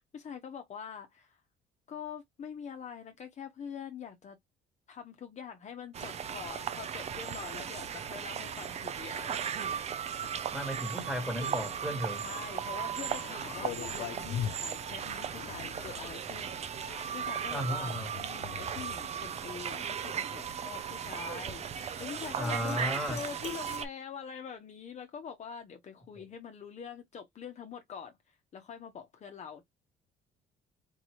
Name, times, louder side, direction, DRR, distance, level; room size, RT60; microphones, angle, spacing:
voice 1, 0.1-1.4 1.9-4.4 4.9-9.4 10.2-10.3 11.4-11.7 12.1-28.1 28.5-29.6, left 7 dB, 45° left, 1.1 m, -44 dB
sound 1, 5.9-23.8, right 8 dB, 40° right, 0.6 m, -37 dB
voice 2, 10.5-12.2 17.5-18.1 22.4-23.2 26.2-26.3, equal, ahead, 1.6 m, -34 dB
sound 2, 13.1-23.8, left 10 dB, 75° left, 0.6 m, -44 dB
4.6 x 2.7 x 3.1 m
cardioid pair, 110°, 17 cm